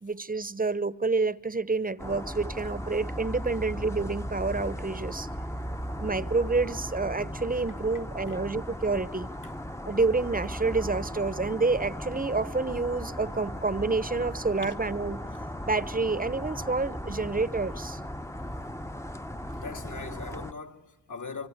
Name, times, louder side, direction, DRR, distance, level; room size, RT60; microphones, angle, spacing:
voice 1, 0.0-5.3 6.0-9.3 9.9-15.2 15.7-18.0, right 3 dB, 20° right, 1.0 m, -28 dB
sound 1, 2.0-20.5, equal, 5° left, 1.0 m, -37 dB
voice 2, 19.5-21.5, left 4 dB, 50° left, 2.4 m, -41 dB
24.5 x 24.5 x 9.5 m
supercardioid pair, 45°, 39 cm